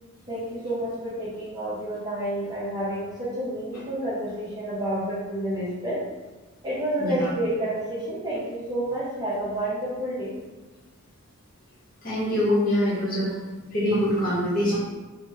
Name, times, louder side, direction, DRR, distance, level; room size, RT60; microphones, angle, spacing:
voice 1, 0.3-6.0 6.6-10.4, right 1 dB, 20° right, -8 dB, 0.6 m, -29 dB
voice 2, 7.0-7.3 12.0-13.3 13.7-14.8, equal, 40° left, -7 dB, 0.9 m, -24 dB
2.8 x 2.1 x 3.4 m, 1.2 s
head